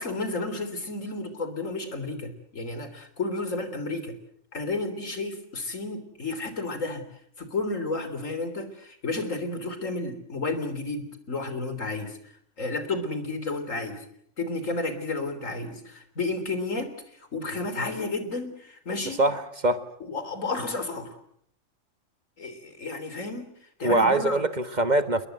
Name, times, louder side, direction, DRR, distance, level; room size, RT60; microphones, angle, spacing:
voice 1, 0.0-4.2 4.5-7.0 7.4-12.2 12.6-14.1 14.4-16.9 17.2-19.2 20.1-21.2 22.4-23.5 23.8-24.4, left 3 dB, 80° left, 10 dB, 3.9 m, -32 dB
voice 2, 19.1-19.8 23.8-25.3, right 2 dB, 35° right, 11 dB, 1.5 m, -23 dB
29.0 x 21.0 x 7.9 m, 0.66 s
omnidirectional pair, 1.3 m